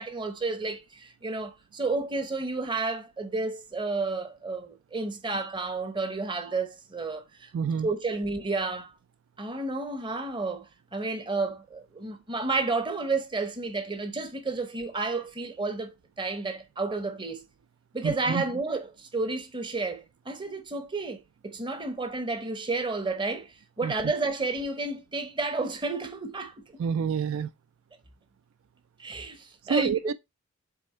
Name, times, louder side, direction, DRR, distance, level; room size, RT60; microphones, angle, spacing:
voice 1, 0.0-7.5 7.8-8.9 9.4-17.4 17.9-26.8 29.0-29.9, right 3 dB, 20° right, 0.9 m, -31 dB
voice 2, 7.5-7.9 18.0-18.4 23.8-23.9 26.8-27.5 29.6-30.1, right 6 dB, 70° right, 0.3 m, -28 dB
7.6 x 3.6 x 4.3 m
head